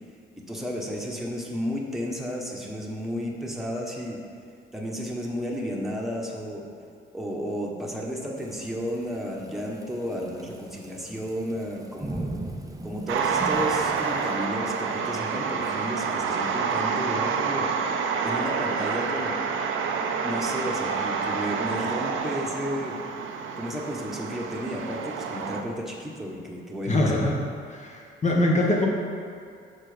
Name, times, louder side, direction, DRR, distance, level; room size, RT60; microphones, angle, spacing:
voice 1, 0.5-4.2 4.7-6.6 7.1-12.3 12.8-17.7 18.2-19.3 20.2-23.0 23.6-27.4, equal, ahead, -3 dB, 1.4 m, -32 dB
Thunderstorm / Rain, 8.4-14.3, right 1 dB, 15° right, 0.7 m, -39 dB
sound 1, 13.1-25.6, right 5 dB, 75° right, 0.7 m, -28 dB
voice 2, 26.8-27.4 27.7-28.9, left 1 dB, 35° left, -1 dB, 1.6 m, -23 dB
7.4 x 5.1 x 5.2 m, 2.3 s
cardioid pair, 90°, 20 cm